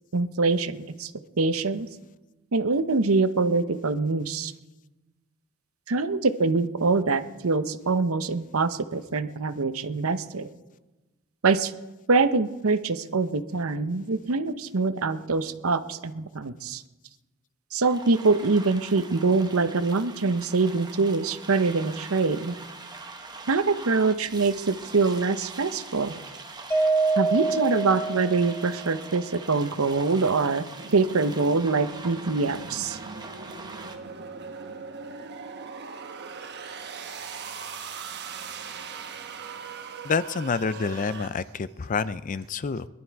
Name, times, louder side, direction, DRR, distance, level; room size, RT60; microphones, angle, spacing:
voice 1, 0.1-1.1 1.4-1.9 2.5-4.5 5.9-10.5 11.4-11.7 12.1-16.8 17.7-22.5 23.5-26.1 27.2-30.6 30.9-33.0, right 3 dB, 70° right, 11 dB, 0.8 m, -24 dB
sound 1, 17.8-34.0, right 3 dB, 20° right, 1.0 m, -43 dB
Mallet percussion, 26.7-29.0, right 3 dB, 10° left, 0.9 m, -25 dB
sound 2, 30.8-41.3, right 5 dB, 50° right, 1.1 m, -40 dB
voice 2, 40.0-42.9, left 5 dB, 35° left, 16 dB, 0.4 m, -28 dB
22.0 x 11.5 x 4.7 m, 1.1 s
head